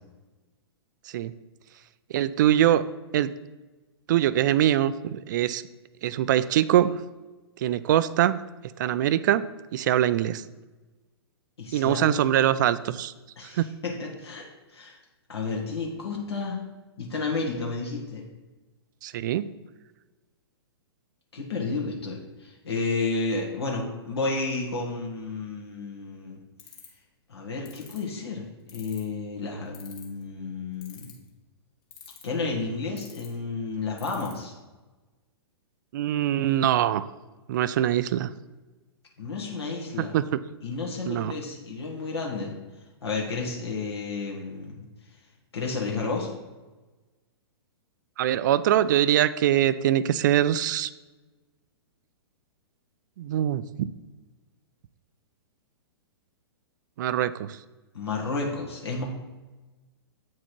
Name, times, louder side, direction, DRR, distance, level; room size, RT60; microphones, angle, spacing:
voice 1, 2.1-2.8 3.1-3.3 4.1-5.6 6.0-7.0 7.6-8.4 8.8-9.4 9.7-10.4 11.7-13.1 13.5-13.7 19.0-19.5 35.9-37.1 37.5-38.3 40.1-40.4 41.1-41.3 48.2-50.9 53.2-53.9 57.0-57.6, right 11 dB, 45° right, 15 dB, 0.4 m, -23 dB
voice 2, 11.6-12.2 13.4-15.0 15.3-16.6 17.0-18.2 21.3-26.4 27.3-31.1 32.2-34.5 39.2-40.2 40.6-42.5 43.0-44.8 45.5-46.3 57.9-59.0, left 3 dB, 70° left, -2 dB, 1.6 m, -31 dB
sound 1, 26.6-27.0 27.7-28.0 28.7-29.1 29.7-30.2 30.8-31.3 31.9-32.4 33.0-33.3 34.0-34.3, left 8 dB, 30° left, 1.9 m, -45 dB
8.3 x 4.6 x 4.5 m, 1.2 s
figure-of-eight pair, 115°, 14 cm